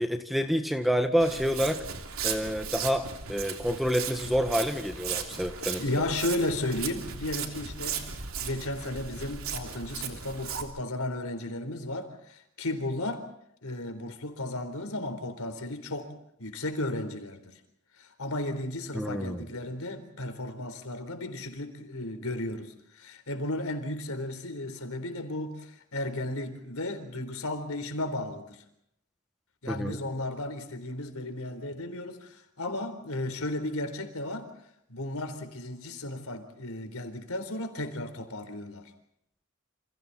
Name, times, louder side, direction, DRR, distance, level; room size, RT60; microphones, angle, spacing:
voice 1, 0.0-1.8 2.2-5.8 18.9-19.4 29.7-30.0, equal, ahead, 1.5 m, -28 dB
Walk footsteps, 1.2-10.6, right 7 dB, 80° right, 3.1 m, -36 dB
voice 2, 5.8-8.1 8.4-13.3 13.6-16.1 16.4-17.5 18.0-28.6 29.6-34.5 34.9-38.9, left 1 dB, 90° left, 4.1 m, -34 dB
29.5 x 28.0 x 4.3 m
head